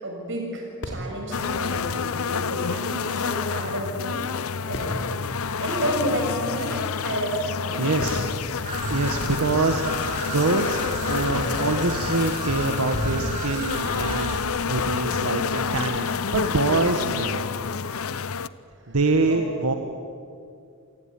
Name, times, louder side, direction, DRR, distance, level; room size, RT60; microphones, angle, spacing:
voice 1, 0.0-4.2 4.7-5.1 5.6-7.8 18.8-19.0 19.3-19.7, right 1 dB, 55° right, 1 dB, 6.8 m, -31 dB
Fireworks, 0.8-18.2, equal, 55° left, 3.5 m, -41 dB
sound 1, 1.3-18.5, left 6 dB, 75° left, 0.7 m, -28 dB
voice 2, 7.8-8.3 8.9-10.8 11.1-17.4 18.9-19.7, right 3 dB, 90° right, 5 dB, 1.5 m, -25 dB
Traffic noise roadway noise / Trickle dribble, 8.6-14.4, right 1 dB, 35° right, 7.4 m, -32 dB
27.5 x 19.0 x 9.7 m, 2.4 s
head